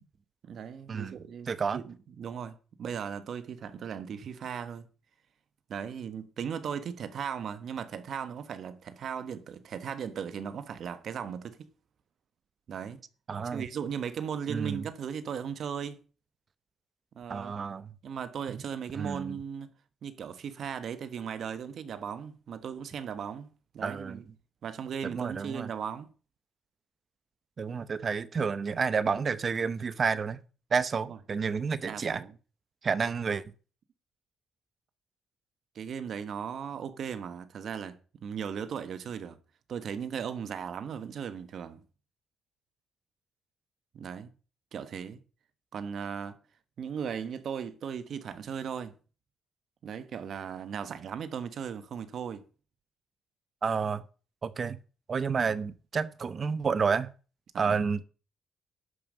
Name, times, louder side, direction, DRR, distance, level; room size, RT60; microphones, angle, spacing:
voice 1, 0.4-4.9 5.7-11.6 12.7-13.0 13.5-16.0 17.1-17.6 18.0-19.7 20.0-24.2 24.6-26.1 31.1-31.2 31.8-32.3 35.7-39.4 39.7-41.8 43.9-44.3 44.7-45.2 45.7-46.4 46.8-48.9 49.8-52.4 55.5-55.6 57.5-57.8, right 7 dB, 60° right, 1.2 m, -37 dB
voice 2, 1.5-1.8 13.3-13.7 14.5-14.9 17.3-17.9 18.5-18.6 18.9-19.4 23.8-24.2 25.0-25.7 27.6-30.4 30.7-32.2 32.8-33.4 53.6-54.0 54.4-54.8 55.1-57.1 57.6-58.0, right 5 dB, 40° right, 0.8 m, -30 dB
11.5 x 5.3 x 6.4 m
cardioid pair, 90°, 0 cm